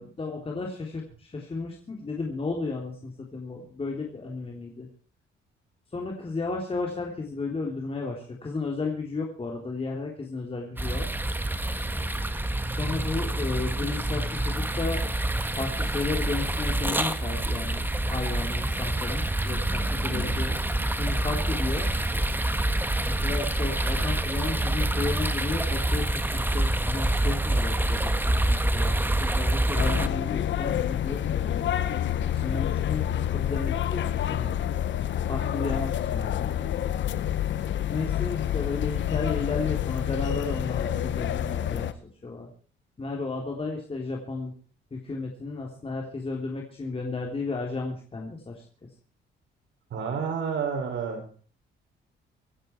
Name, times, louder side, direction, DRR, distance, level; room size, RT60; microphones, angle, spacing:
voice 1, 0.0-4.9 5.9-11.1 12.8-15.1 15.6-20.6 20.9-21.9 23.1-31.7 32.3-34.5 35.2-36.6 37.9-42.5 43.0-44.5 44.9-48.6, left 3 dB, 30° left, 0 dB, 3.5 m, -33 dB
sound 1, 10.8-30.1, right 1 dB, 10° right, 1.6 m, -27 dB
sound 2, 29.8-41.9, left 10 dB, 70° left, 1.3 m, -28 dB
voice 2, 49.9-51.2, right 6 dB, 65° right, 3 dB, 6.4 m, -30 dB
25.0 x 9.7 x 4.6 m, 0.43 s
cardioid pair, 90°, 20 cm